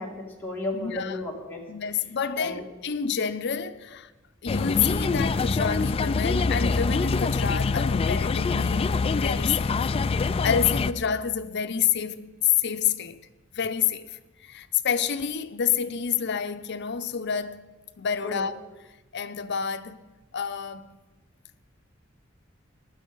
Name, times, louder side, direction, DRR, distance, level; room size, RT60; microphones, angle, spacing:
voice 1, 0.0-1.6 2.4-2.6 18.2-18.5, left 2 dB, 10° left, 2.5 m, -33 dB
voice 2, 0.7-1.2 1.7-4.1 4.4-9.7 10.2-13.2 13.5-17.6 18.0-18.6 19.1-20.1 20.3-21.0, left 8 dB, 60° left, 0.7 m, -28 dB
sound 1, 4.5-10.9, left 4 dB, 30° left, 0.3 m, -25 dB
15.5 x 11.5 x 5.4 m
head